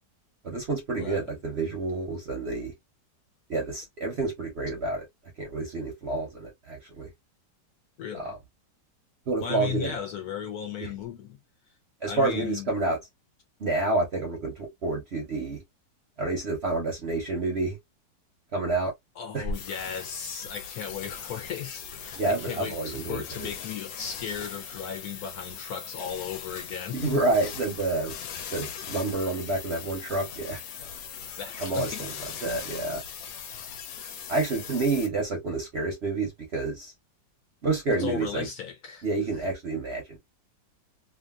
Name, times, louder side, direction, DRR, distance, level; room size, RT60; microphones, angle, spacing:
voice 1, 0.4-2.7 3.5-5.1 5.4-7.1 8.1-8.4 9.3-9.9 10.8-10.9 12.0-13.0 13.6-15.6 16.2-17.8 18.5-18.9 19.3-19.5 22.2-23.5 26.9-28.1 28.5-30.6 31.6-33.0 34.3-36.9 37.6-38.5 39.0-40.2, right 3 dB, 50° right, 0.8 m, -29 dB
voice 2, 8.0-8.3 9.4-11.4 12.0-12.7 19.2-27.2 31.3-32.1 38.0-39.1, left 8 dB, 65° left, 1.2 m, -36 dB
sound 1, 19.5-35.1, left 7 dB, 90° left, 1.4 m, -40 dB
3.1 x 2.5 x 2.3 m
omnidirectional pair, 2.0 m